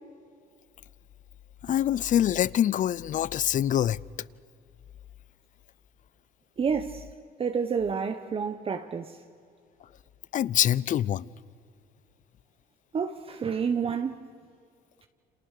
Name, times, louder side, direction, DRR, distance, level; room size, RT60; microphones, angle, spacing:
voice 1, 1.6-4.0 10.3-11.3, left 11 dB, 50° left, 0.6 m, -25 dB
voice 2, 6.6-7.1 7.4-9.2 12.9-14.2, right 6 dB, 35° right, 1.1 m, -29 dB
29.5 x 27.5 x 6.7 m
cardioid pair, 110°, 17 cm